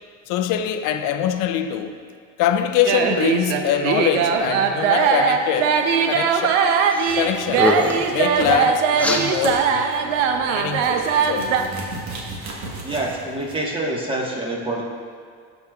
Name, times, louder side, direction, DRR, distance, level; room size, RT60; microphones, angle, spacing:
voice 1, 0.3-2.0 2.4-5.8 6.1-6.6 7.2-7.7 8.1-10.1 10.5-11.0 11.3-11.5, left 9 dB, 60° left, 9 dB, 0.6 m, -23 dB
sound 1, 2.8-11.6, right 6 dB, 85° right, 0.7 m, -20 dB
sound 2, 6.9-7.2 7.5-8.1 9.0-9.2, left 2 dB, 5° left, 0.6 m, -22 dB
sound 3, 7.1-13.5, right 2 dB, 50° right, 1.5 m, -37 dB
voice 2, 12.8-14.8, right 1 dB, 15° right, -2 dB, 1.4 m, -26 dB
12.5 x 5.2 x 2.4 m, 2.2 s
supercardioid pair, 100°, 35 cm